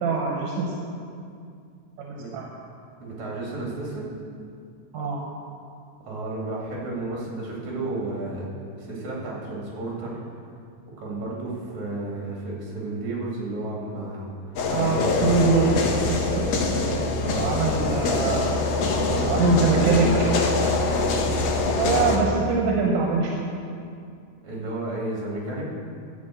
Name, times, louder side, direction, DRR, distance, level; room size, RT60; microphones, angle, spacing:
voice 1, 0.0-0.7 2.0-2.5 4.9-5.2 14.7-16.9 17.4-18.5 19.3-20.1 21.7-23.5, right 4 dB, 85° right, -1 dB, 2.6 m, -24 dB
voice 2, 3.0-4.1 6.0-8.5 8.8-10.2 11.0-14.3 14.8-15.3 17.2-17.8 18.9-20.5 24.4-25.7, right 2 dB, 65° right, -4 dB, 3.8 m, -32 dB
sound 1, 14.6-22.2, left 3 dB, 65° left, 1.9 m, -24 dB
11.5 x 6.0 x 7.9 m, 2.4 s
omnidirectional pair, 3.5 m